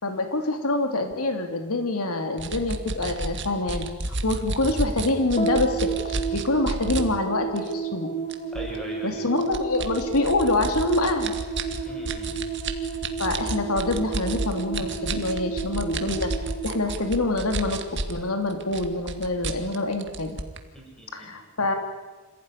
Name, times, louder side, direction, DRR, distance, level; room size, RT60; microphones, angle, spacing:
voice 1, 0.0-8.1 9.0-11.3 13.2-16.3 16.6-17.8 18.1-20.4 21.1-21.7, left 2 dB, 80° left, 5 dB, 2.7 m, -26 dB
sound 1, 2.4-7.0 7.6-7.7 8.3-8.8 9.4-18.2 18.5-20.6, right 2 dB, 55° right, 2.0 m, -31 dB
sound 2, 5.4-17.9, right 6 dB, 30° left, 2.3 m, -32 dB
voice 2, 8.5-9.2 11.8-12.5 20.7-21.4, equal, 5° left, -1 dB, 6.5 m, -40 dB
27.0 x 16.0 x 10.0 m, 1.3 s
head